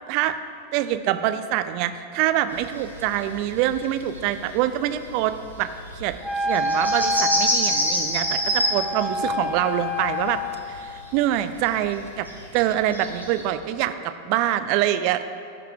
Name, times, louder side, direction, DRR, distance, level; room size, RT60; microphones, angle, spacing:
voice 1, 0.7-5.7 6.0-6.1 6.4-10.4 10.7-12.3 12.5-15.2, right 12 dB, 45° right, 11 dB, 0.4 m, -25 dB
sound 1, 2.5-9.1 9.4-9.8 10.2-11.5 11.7-13.4, equal, 90° left, 1.7 m, -27 dB
Wind instrument woodwind instrument, 6.2-10.8, left 1 dB, 10° left, 0.8 m, -28 dB
14.0 x 4.9 x 4.6 m, 2.3 s
figure-of-eight pair, 90°, 0 cm